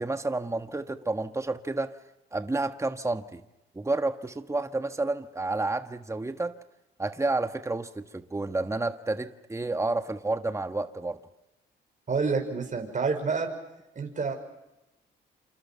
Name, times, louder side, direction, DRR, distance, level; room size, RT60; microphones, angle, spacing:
voice 1, 0.0-1.9 2.3-3.4 3.7-6.5 7.0-11.2, right 2 dB, 15° right, 8 dB, 1.5 m, -30 dB
voice 2, 12.1-13.5 14.0-14.3, right 4 dB, 40° right, 4 dB, 5.7 m, -28 dB
27.5 x 27.5 x 5.8 m, 0.93 s
supercardioid pair, 70°, 20 cm